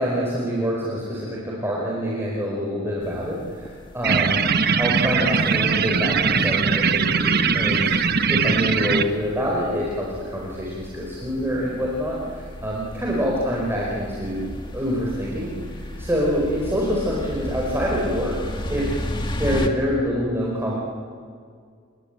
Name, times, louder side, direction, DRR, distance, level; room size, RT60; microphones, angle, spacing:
voice 1, 0.0-7.9 8.3-18.4 18.7-18.9 19.4-20.7, equal, 10° right, -4 dB, 4.6 m, -26 dB
sound 1, 3.0-19.7, equal, 25° left, 2.0 m, -35 dB
sound 2, 4.0-9.0, right 5 dB, 50° right, 1.2 m, -21 dB
29.5 x 21.5 x 9.1 m, 2.1 s
head